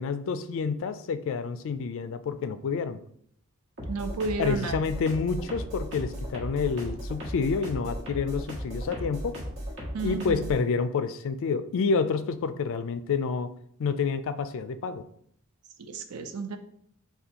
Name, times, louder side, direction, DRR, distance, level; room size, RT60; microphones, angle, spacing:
voice 1, 0.0-3.0 4.4-9.4 10.0-13.5 13.8-15.0, left 5 dB, 65° left, 12 dB, 0.3 m, -28 dB
sound 1, 3.8-10.6, equal, 60° right, 1.4 m, -36 dB
voice 2, 3.9-4.7 9.9-10.5 15.8-16.6, right 3 dB, 80° right, 8 dB, 0.5 m, -32 dB
6.6 x 2.3 x 2.8 m, 0.64 s
head